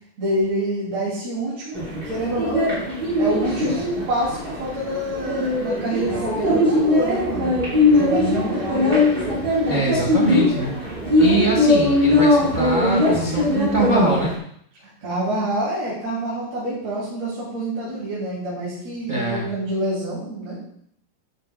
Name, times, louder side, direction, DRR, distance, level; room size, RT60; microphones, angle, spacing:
voice 1, 0.2-2.8 3.2-7.5 7.9-8.9 14.8-20.6, right 1 dB, 50° right, -8 dB, 4.0 m, -27 dB
sound 1, 1.7-14.3, left 2 dB, 20° right, 2.3 m, -20 dB
voice 2, 9.7-10.7 11.2-14.3 19.1-19.5, right 2 dB, 70° right, -3 dB, 0.7 m, -23 dB
12.0 x 9.2 x 2.4 m, 0.67 s
omnidirectional pair, 3.9 m